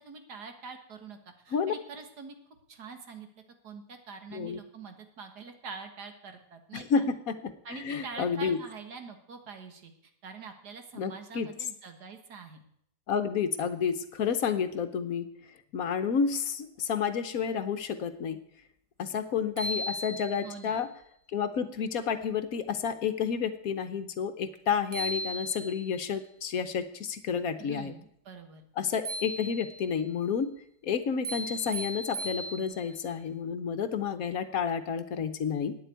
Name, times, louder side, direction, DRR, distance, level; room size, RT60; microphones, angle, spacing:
voice 1, 0.0-2.4 2.7-3.3 3.6-7.1 7.6-9.9 10.2-12.6 20.4-20.8 27.6-28.6, right 5 dB, 75° right, 6 dB, 2.0 m, -45 dB
voice 2, 6.7-8.6 11.0-11.5 13.1-15.3 15.7-18.4 19.0-20.9 21.3-27.9 28.8-30.5 30.8-35.8, left 6 dB, 65° left, 10 dB, 1.2 m, -30 dB
sound 1, 19.1-19.2 19.6-20.7 24.6-24.7 24.9-26.0 29.1-30.0 31.2-33.0, equal, 25° right, 1.0 m, -37 dB
9.2 x 7.9 x 9.2 m, 0.71 s
omnidirectional pair, 1.8 m